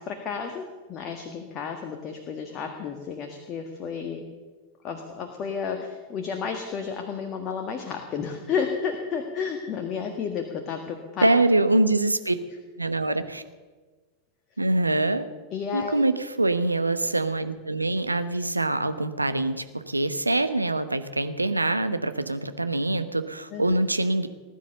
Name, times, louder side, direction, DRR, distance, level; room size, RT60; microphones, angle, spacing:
voice 1, 0.0-4.2 4.8-11.3 13.1-13.2 15.5-16.0 23.5-23.7, left 6 dB, 35° left, 4 dB, 1.6 m, -32 dB
voice 2, 11.2-12.4 12.8-13.4 14.6-15.3 15.7-24.3, right 2 dB, 85° right, 10 dB, 0.9 m, -24 dB
19.5 x 10.5 x 6.8 m, 1.3 s
figure-of-eight pair, 90°, 0 cm